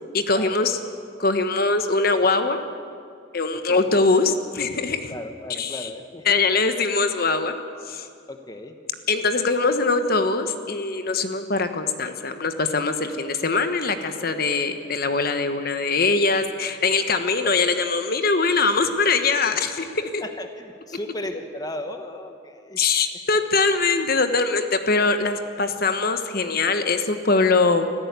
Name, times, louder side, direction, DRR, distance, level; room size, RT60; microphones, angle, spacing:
voice 1, 0.1-0.8 1.2-2.6 3.3-5.1 5.6-5.9 6.3-7.5 7.9-8.1 9.1-20.2 22.8-27.9, left 3 dB, 50° left, 8 dB, 1.2 m, -22 dB
voice 2, 3.5-3.9 5.1-6.4 8.3-8.8 14.1-14.4 17.4-17.6 19.5-19.6 20.2-22.8 23.7-23.8, left 1 dB, 20° left, 6 dB, 1.1 m, -36 dB
25.5 x 15.0 x 8.3 m, 2.4 s
head